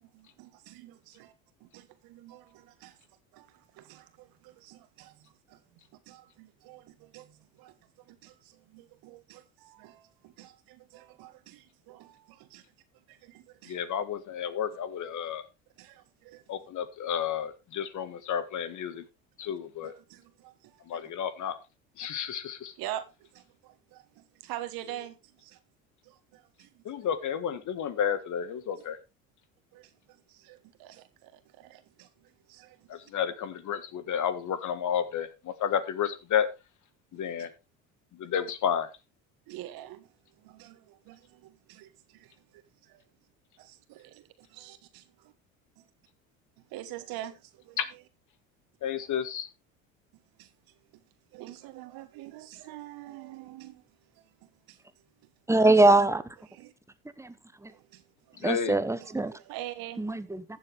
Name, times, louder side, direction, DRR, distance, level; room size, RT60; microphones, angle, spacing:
voice 1, 0.0-1.3 1.6-3.0 3.3-5.6 6.1-7.7 8.1-12.6 13.1-13.8 15.8-16.4 19.8-21.0 22.8-23.1 23.3-25.6 26.0-26.8 28.8-28.9 29.7-33.0 39.5-40.1 40.4-43.0 43.6-45.3 45.8-45.9 46.7-48.0 50.4-50.5 51.3-53.8 54.2-54.3 54.7-54.8 56.5-56.7 57.7-58.0 58.9-60.0, right 14 dB, 65° right, 1.6 m, -46 dB
voice 2, 13.7-15.4 16.5-19.0 19.4-19.9 20.9-21.6 22.0-22.7 26.8-29.0 32.9-36.5 37.1-37.5 38.2-38.9 47.8-47.9 48.8-49.5 58.4-58.7, left 8 dB, 50° left, 1.6 m, -31 dB
voice 3, 55.5-56.2 57.2-57.3 57.6-57.7 58.4-59.3 60.0-60.4, right 2 dB, 5° right, 1.0 m, -22 dB
14.5 x 7.4 x 3.4 m
hypercardioid pair, 75°, 39 cm